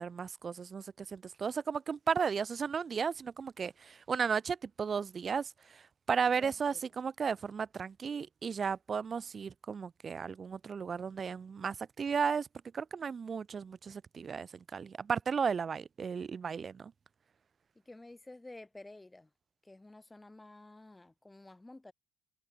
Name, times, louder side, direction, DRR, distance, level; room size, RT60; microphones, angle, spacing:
voice 1, 0.0-5.8 6.1-12.5 12.7-16.9, right 6 dB, 40° right, 0.5 m, -34 dB
voice 2, 6.3-6.8 17.8-19.3 19.6-21.9, left 2 dB, 15° left, 1.6 m, -52 dB
figure-of-eight pair, 50°, 0 cm